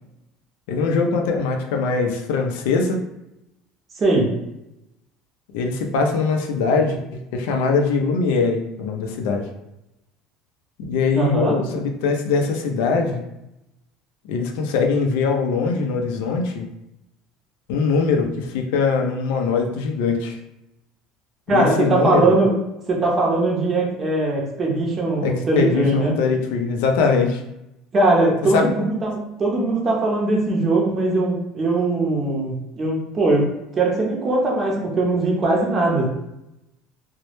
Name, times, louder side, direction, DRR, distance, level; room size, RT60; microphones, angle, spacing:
voice 1, 0.7-3.0 5.5-7.0 7.3-9.5 10.9-13.2 14.2-16.7 17.7-20.4 21.5-22.3 25.2-27.4 28.5-28.7, left 4 dB, 90° left, 3 dB, 0.4 m, -21 dB
voice 2, 4.0-4.3 11.2-11.5 21.5-22.5 22.9-26.2 27.9-33.5 33.7-36.1, right 2 dB, 25° right, -1 dB, 0.5 m, -20 dB
2.1 x 2.0 x 2.9 m, 0.89 s
cardioid pair, 155°, 0 cm